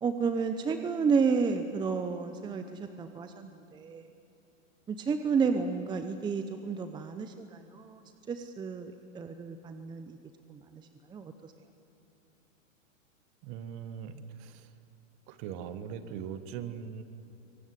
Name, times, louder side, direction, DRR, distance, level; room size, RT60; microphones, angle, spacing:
voice 1, 0.0-4.0 4.9-8.0 8.3-10.2 10.5-10.8 11.1-11.5, right 5 dB, 10° right, 8 dB, 0.8 m, -31 dB
voice 2, 13.4-14.7 15.3-17.0, right 8 dB, 40° right, 11 dB, 1.7 m, -40 dB
23.5 x 19.0 x 9.7 m, 2.8 s
hypercardioid pair, 130°, 40 cm